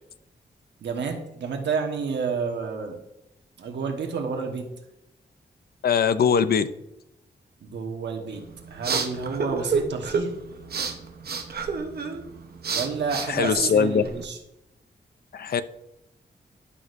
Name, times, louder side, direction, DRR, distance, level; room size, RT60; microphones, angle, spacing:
voice 1, 0.8-3.0 3.6-4.7 7.6-10.3 12.7-14.4, right 5 dB, 90° right, 3 dB, 1.3 m, -30 dB
voice 2, 5.8-6.7 13.3-14.0 15.3-15.6, left 6 dB, 60° left, 14 dB, 0.5 m, -21 dB
sound 1, 8.3-14.2, right 5 dB, 65° right, 0.9 m, -30 dB
11.0 x 6.3 x 2.6 m, 0.89 s
wide cardioid pair, 90°, 18 cm